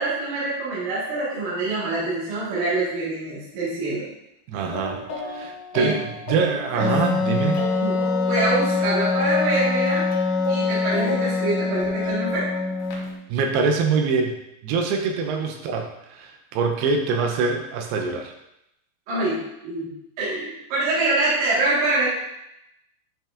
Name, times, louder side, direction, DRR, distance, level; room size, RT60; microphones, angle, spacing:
voice 1, 0.0-4.1 5.7-6.0 6.7-6.9 7.8-10.1 10.5-12.5 19.1-19.9 20.2-22.1, right 2 dB, 60° right, -9 dB, 2.8 m, -25 dB
voice 2, 4.5-7.6 13.3-14.4 14.6-18.3, right 5 dB, 80° right, 3 dB, 2.5 m, -24 dB
sound 1, 4.7-8.8 9.2-13.2, left 2 dB, 65° left, 3.0 m, -34 dB
Wind instrument woodwind instrument, 6.8-13.2, left 4 dB, 85° left, 3.1 m, -24 dB
8.6 x 6.0 x 2.4 m, 0.83 s
omnidirectional pair, 5.1 m